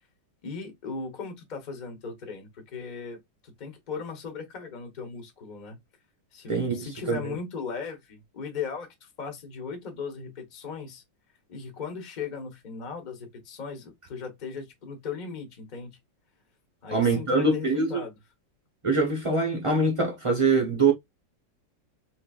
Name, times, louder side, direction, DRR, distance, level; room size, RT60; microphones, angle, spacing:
voice 1, 0.4-5.8 6.3-11.0 11.5-16.0 16.8-18.1, left 5 dB, 35° left, 0.8 m, -37 dB
voice 2, 6.5-7.3 16.9-18.0 18.8-20.9, right 3 dB, 35° right, 0.5 m, -24 dB
3.9 x 3.1 x 2.4 m
omnidirectional pair, 2.1 m